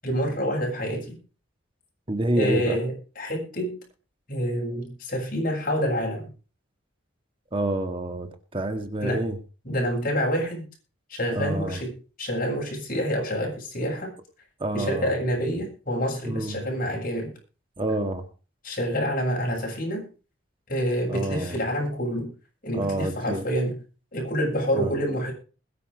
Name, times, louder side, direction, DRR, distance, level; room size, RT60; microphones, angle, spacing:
voice 1, 0.0-1.2 2.3-3.8 4.3-6.3 9.0-9.2 9.6-10.7 11.1-14.1 14.7-17.3 18.6-20.1 20.7-22.3 22.6-23.8 24.1-25.3, equal, 45° left, 1 dB, 7.7 m, -27 dB
voice 2, 2.1-2.8 7.5-9.4 11.3-11.8 14.6-15.2 16.2-16.6 17.8-18.2 21.1-21.6 22.7-23.4 24.7-24.9, right 1 dB, 25° right, 6 dB, 1.9 m, -28 dB
21.0 x 7.2 x 5.2 m, 0.36 s
head